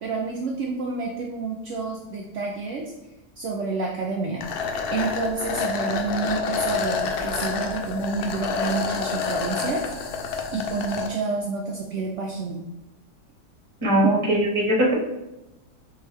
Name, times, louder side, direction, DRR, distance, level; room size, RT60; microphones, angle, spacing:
voice 1, 0.0-2.8 3.4-4.5 4.9-9.8 10.5-12.6, right 4 dB, 75° right, -2 dB, 0.6 m, -29 dB
sound 1, 4.4-11.1, left 5 dB, 70° left, 1.0 m, -28 dB
voice 2, 13.8-14.9, right 1 dB, 20° right, -4 dB, 0.8 m, -20 dB
4.6 x 2.6 x 3.3 m, 0.98 s
omnidirectional pair, 1.8 m